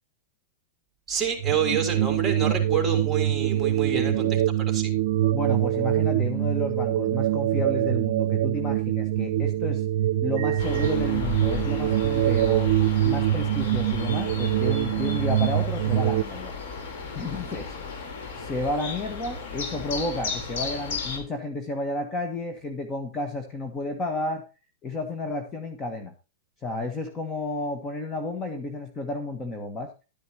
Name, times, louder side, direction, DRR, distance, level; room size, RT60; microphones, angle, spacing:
voice 1, 1.1-4.3 4.6-4.9, right 6 dB, 10° right, 4 dB, 3.2 m, -28 dB
sound 1, 1.4-16.2, right 13 dB, 65° right, 0.6 m, -24 dB
voice 2, 3.9-4.4 5.3-9.8 10.2-12.7 13.0-16.5 17.1-17.7 18.3-24.4 24.8-26.1 26.6-29.9, left 2 dB, 20° left, 5 dB, 1.4 m, -32 dB
sound 2, 10.6-21.2, left 4 dB, 70° left, 3.7 m, -34 dB
12.0 x 9.5 x 2.9 m, 0.31 s
supercardioid pair, 150°, 0 cm